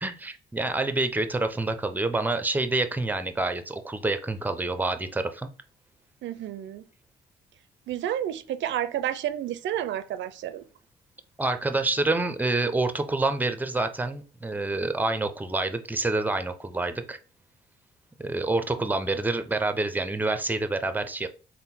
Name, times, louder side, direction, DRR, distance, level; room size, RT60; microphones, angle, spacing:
voice 1, 0.0-5.5 11.4-17.2 18.2-21.3, right 2 dB, 10° right, 0.5 m, -27 dB
voice 2, 6.2-6.8 7.9-10.6, right 11 dB, 70° right, 0.4 m, -30 dB
3.5 x 2.1 x 4.3 m
cardioid pair, 90°, 20 cm